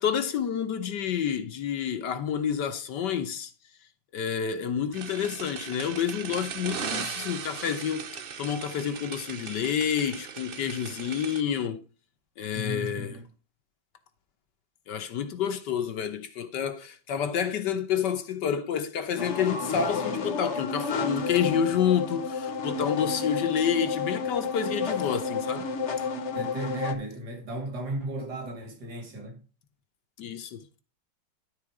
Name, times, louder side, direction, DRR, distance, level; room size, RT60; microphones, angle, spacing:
voice 1, 0.0-3.5 4.1-8.1 8.4-11.8 12.4-13.2 14.9-25.7 30.2-30.6, left 8 dB, 70° left, 1.6 m, -29 dB
sound 1, 4.9-11.4, right 7 dB, 90° right, 0.5 m, -38 dB
voice 2, 12.5-13.3 26.3-29.4, right 1 dB, 60° right, 2.9 m, -35 dB
sound 2, 19.2-26.9, left 5 dB, 45° left, 1.2 m, -31 dB
12.5 x 4.2 x 4.8 m
omnidirectional pair, 2.0 m